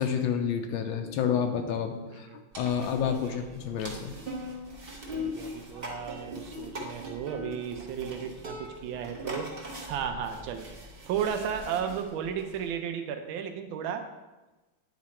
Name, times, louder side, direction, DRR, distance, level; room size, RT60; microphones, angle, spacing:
voice 1, 0.0-4.1, left 7 dB, 80° left, 5 dB, 1.4 m, -29 dB
sound 1, 2.5-12.7, left 1 dB, 35° right, 1.1 m, -41 dB
voice 2, 2.7-3.4 5.1-9.6 9.9-10.7 11.1-14.1, right 8 dB, 90° right, 7 dB, 1.4 m, -34 dB
9.5 x 4.1 x 4.3 m, 1.1 s
omnidirectional pair, 2.1 m